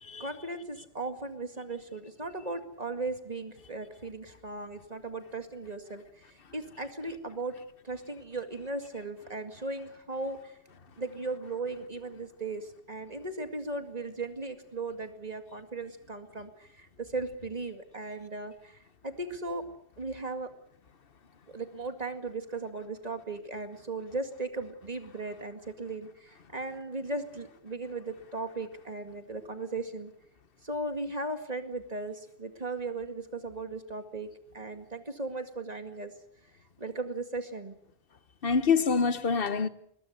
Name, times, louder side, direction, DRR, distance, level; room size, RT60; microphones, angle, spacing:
voice 1, 0.2-7.5 7.8-10.6 11.0-19.7 20.0-20.5 21.5-30.1 30.6-36.1 36.8-37.7, right 3 dB, 40° right, 2.2 m, -37 dB
voice 2, 38.4-39.7, left 5 dB, 60° left, 1.3 m, -26 dB
21.0 x 20.5 x 8.1 m
omnidirectional pair, 1.1 m